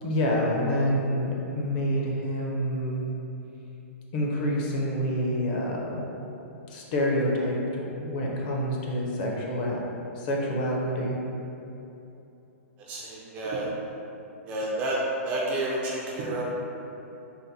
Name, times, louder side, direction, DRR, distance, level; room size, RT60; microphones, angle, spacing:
voice 1, 0.0-3.1 4.1-6.0 6.7-9.8 10.2-11.2, equal, 35° left, -2 dB, 0.5 m, -27 dB
voice 2, 12.9-13.7 14.5-15.0 15.2-16.4, right 2 dB, 20° right, -4 dB, 0.3 m, -30 dB
4.1 x 2.1 x 3.9 m, 3.0 s
hypercardioid pair, 165°, 8 cm